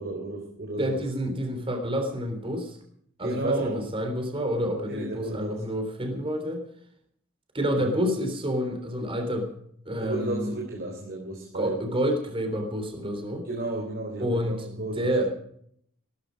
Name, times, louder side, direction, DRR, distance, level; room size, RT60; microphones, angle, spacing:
voice 1, 0.0-1.0 3.2-3.9 4.8-5.6 7.8-7.9 10.0-11.9 13.4-15.3, right 2 dB, 50° right, 0 dB, 3.7 m, -33 dB
voice 2, 0.8-2.8 3.2-6.6 7.5-9.5 9.9-10.5 11.5-13.4 14.2-14.6 15.0-15.3, equal, 25° right, 5 dB, 3.6 m, -28 dB
17.5 x 14.0 x 5.2 m, 0.67 s
head